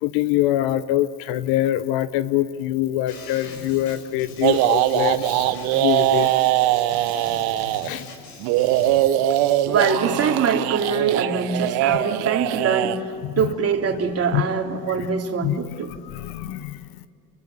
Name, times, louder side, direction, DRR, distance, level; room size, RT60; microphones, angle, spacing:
voice 1, 0.0-6.3 7.8-8.1 13.2-13.3 14.3-14.4 15.4-15.5 16.0-16.8, left 14 dB, 50° left, 15 dB, 1.0 m, -24 dB
sound 1, 3.1-9.1, left 3 dB, 75° left, 6.3 m, -41 dB
sound 2, 4.4-7.9 8.4-13.0, right 14 dB, 50° right, 1.4 m, -21 dB
voice 2, 9.7-13.1 13.4-15.9, right 6 dB, 30° right, 3 dB, 3.4 m, -23 dB
29.5 x 23.0 x 8.6 m, 2.3 s
hypercardioid pair, 85°, 48 cm